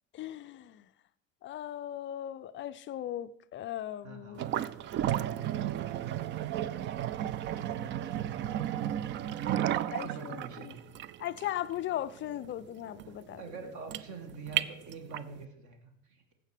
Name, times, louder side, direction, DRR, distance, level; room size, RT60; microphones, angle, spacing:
voice 1, 0.1-0.9 1.4-4.5 9.9-10.4 11.2-13.4, left 12 dB, 30° left, 0.4 m, -38 dB
voice 2, 4.0-4.6 7.5-8.9 9.8-10.8 13.0-16.3, right 5 dB, 45° right, 2.0 m, -46 dB
sound 1, 4.4-15.4, right 11 dB, 30° right, 0.4 m, -34 dB
15.5 x 5.9 x 4.9 m
hypercardioid pair, 80°, 40 cm